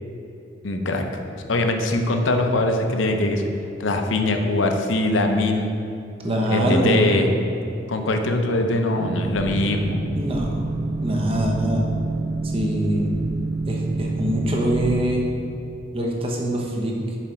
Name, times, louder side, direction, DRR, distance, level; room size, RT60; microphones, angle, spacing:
voice 1, 0.6-1.2 1.5-3.4 3.8-5.7 6.5-7.3 7.9-10.0, left 2 dB, 75° left, 4 dB, 0.7 m, -22 dB
voice 2, 6.2-7.2 10.1-10.6 11.0-11.8 12.4-13.2 13.7-15.2 15.9-17.2, right 1 dB, 30° right, -1 dB, 0.9 m, -23 dB
Boat Water vehicle, 9.0-15.0, right 3 dB, 90° right, 1.0 m, -27 dB
7.4 x 5.0 x 4.4 m, 2.8 s
head